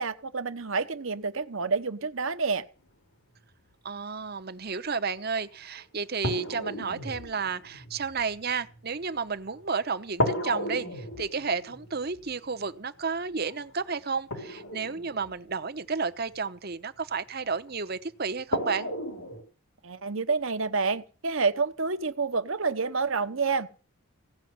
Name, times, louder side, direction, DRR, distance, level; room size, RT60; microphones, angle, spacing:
voice 1, 0.0-2.7 19.8-23.7, right 4 dB, 65° right, 1.0 m, -28 dB
voice 2, 3.8-18.9, right 5 dB, 45° right, 0.9 m, -32 dB
sound 1, 5.4-5.5 6.2-9.7 10.2-16.3 17.7-17.8 18.5-19.4, equal, 80° left, 4.6 m, -34 dB
17.0 x 6.4 x 9.5 m
head